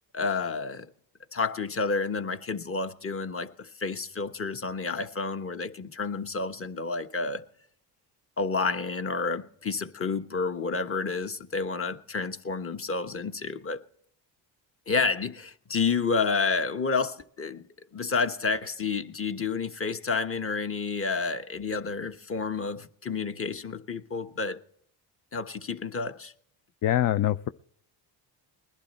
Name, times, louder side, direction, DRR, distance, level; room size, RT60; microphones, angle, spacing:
voice 1, 0.1-0.9 1.3-7.4 8.4-13.8 14.9-17.7 17.9-24.6 25.3-26.3, left 4 dB, 30° left, 1.3 m, -30 dB
voice 2, 26.8-27.5, left 12 dB, 45° left, 0.6 m, -24 dB
21.0 x 11.5 x 4.3 m
cardioid pair, 90°, 45 cm